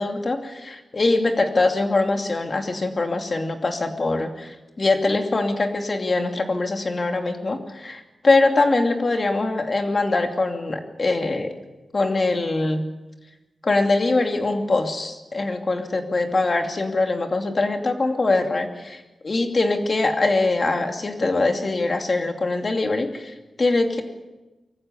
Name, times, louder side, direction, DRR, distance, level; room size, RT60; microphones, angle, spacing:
voice 1, 0.0-11.5 11.9-12.9 13.6-24.0, left 2 dB, 40° left, 4 dB, 2.6 m, -23 dB
24.0 x 14.5 x 9.6 m, 1.1 s
wide cardioid pair, 120°, 0 cm